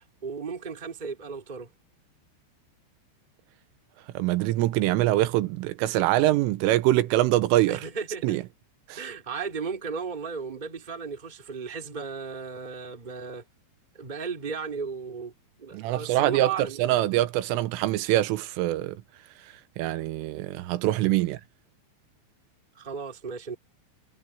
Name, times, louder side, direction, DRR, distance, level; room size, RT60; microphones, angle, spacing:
voice 1, 0.0-1.7 7.7-8.4 8.9-13.4 13.9-15.3 15.6-16.8 22.7-23.6, right 5 dB, 25° right, 0.9 m, -35 dB
voice 2, 4.2-7.9 8.2-8.4 8.9-9.0 15.7-16.5 16.8-19.0 19.8-21.4, right 15 dB, 90° right, 3.5 m, -24 dB
omnidirectional pair, 5.9 m